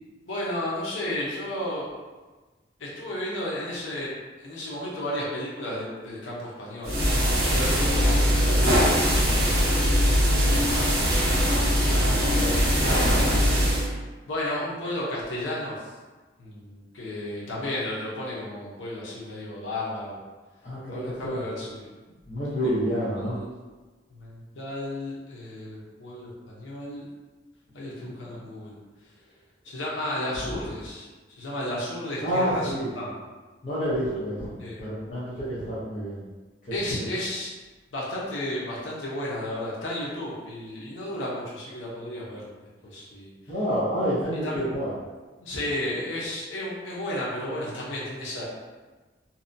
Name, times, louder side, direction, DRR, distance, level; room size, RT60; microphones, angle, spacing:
voice 1, 0.3-1.9 2.8-4.1 4.4-9.8 10.7-13.2 14.3-15.9 16.4-20.2 20.9-21.9 22.5-23.5 24.1-27.0 27.7-28.8 29.6-33.1 34.6-34.8 36.7-37.5 37.9-42.4 42.8-43.3 44.4-44.7 45.4-48.4, left 1 dB, 90° left, -5 dB, 0.6 m, -33 dB
sound 1, 6.8-13.9, equal, 55° right, 0.9 m, -21 dB
voice 2, 20.6-21.4 22.3-23.4 28.0-28.4 30.3-30.4 32.2-32.9 33.6-36.2 43.5-44.9, equal, 45° left, -12 dB, 0.7 m, -28 dB
2.7 x 2.1 x 2.5 m, 1.3 s
head